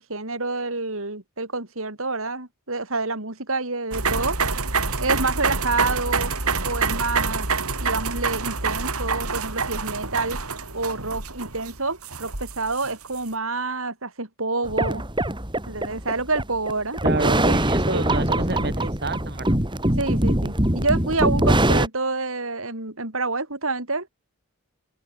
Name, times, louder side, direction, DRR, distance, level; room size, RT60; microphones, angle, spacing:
voice 1, 0.0-4.4 5.0-6.3 6.6-7.5 7.8-10.4 10.7-15.1 15.7-17.0 17.4-17.6 17.9-18.0 20.0-24.1, right 3 dB, 65° right, 4.4 m, -28 dB
sound 1, 3.9-13.2, right 4 dB, 85° right, 5.2 m, -27 dB
sound 2, 14.7-21.9, right 1 dB, 20° right, 4.3 m, -22 dB
voice 2, 17.0-19.6, right 2 dB, 50° right, 3.1 m, -29 dB
open air
head